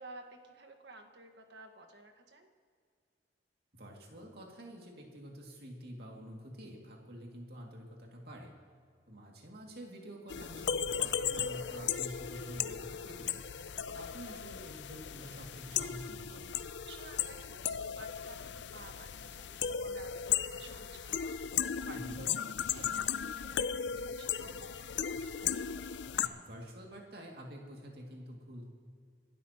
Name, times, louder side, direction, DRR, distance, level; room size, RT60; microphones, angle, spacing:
voice 1, 0.0-2.5 12.3-12.5 16.9-24.9, right 3 dB, 75° right, 4 dB, 1.5 m, -53 dB
voice 2, 3.7-8.5 9.1-13.5 13.9-16.6 21.9-22.2 26.2-28.7, equal, 60° right, 0 dB, 2.4 m, -48 dB
sound 1, 10.3-26.3, left 8 dB, 80° left, 0.5 m, -36 dB
26.5 x 12.5 x 3.0 m, 2.1 s
head